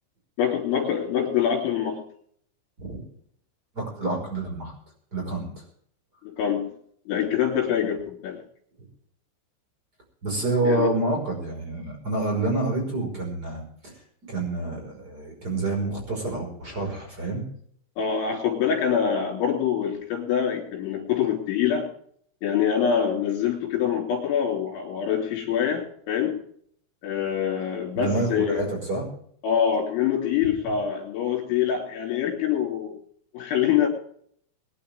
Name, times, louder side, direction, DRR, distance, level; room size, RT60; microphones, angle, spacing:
voice 1, 0.4-2.0 6.2-6.7 7.1-8.4 10.6-10.9 18.0-21.9 22.4-26.4 27.0-28.6 29.4-33.0 33.3-33.9, left 8 dB, 70° left, 1 dB, 6.0 m, -25 dB
voice 2, 3.7-4.7 5.1-5.5 10.2-13.9 14.2-17.4 28.0-29.0, right 2 dB, 20° right, 1 dB, 5.5 m, -28 dB
24.0 x 10.5 x 3.5 m, 0.62 s
omnidirectional pair, 5.7 m